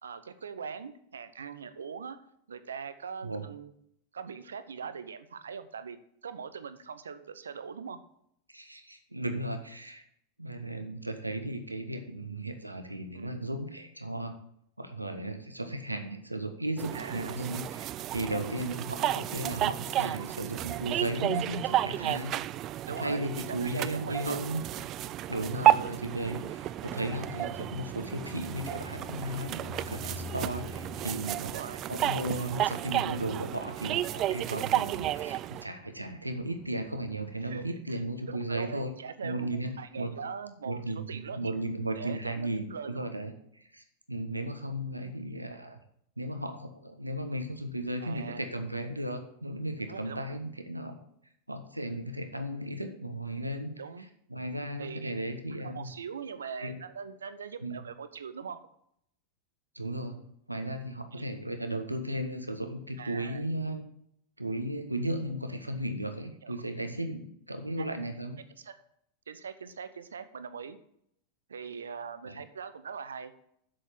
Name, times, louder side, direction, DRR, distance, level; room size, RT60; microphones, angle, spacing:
voice 1, 0.0-2.2 2.5-3.7 4.1-6.0 6.2-8.0 13.1-13.3 16.9-17.4 22.0-22.4 22.9-24.4 25.5-26.0 31.4-31.9 37.4-38.0 38.3-39.5 39.8-40.8 41.1-41.5 41.9-43.1 48.0-48.5 49.9-50.4 53.8-54.1 54.8-55.1 55.6-58.6 61.1-61.3 63.0-63.4 66.4-66.6 67.8-67.9 68.6-68.7 69.3-70.8 71.5-73.3, right 6 dB, 70° right, 12 dB, 0.8 m, -41 dB
voice 2, 8.5-10.0 10.4-14.3 14.8-22.3 23.0-24.6 25.3-38.9 39.2-40.2 40.6-45.8 46.2-50.9 51.5-53.7 54.3-55.9 56.6-56.8 57.6-57.8 59.7-60.2 60.5-63.8 64.4-68.4 72.2-72.4, right 1 dB, 85° right, 7 dB, 1.2 m, -35 dB
sound 1, 16.8-35.7, right 13 dB, 35° right, 0.3 m, -32 dB
sound 2, 25.0-37.7, left 5 dB, 15° left, 1.0 m, -49 dB
7.7 x 6.4 x 7.6 m, 0.72 s
figure-of-eight pair, 90°, 0 cm